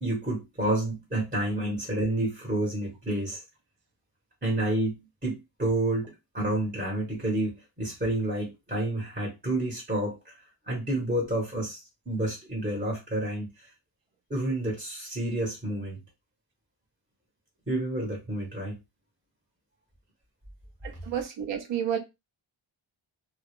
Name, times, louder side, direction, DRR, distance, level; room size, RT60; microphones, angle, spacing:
voice 1, 0.0-3.4 4.4-10.4 10.7-13.7 14.3-16.0 17.7-18.8, right 1 dB, 20° right, 0.8 m, -29 dB
voice 2, 21.1-22.0, right 9 dB, 65° right, 0.6 m, -30 dB
2.3 x 2.0 x 3.0 m
wide cardioid pair, 110°, 49 cm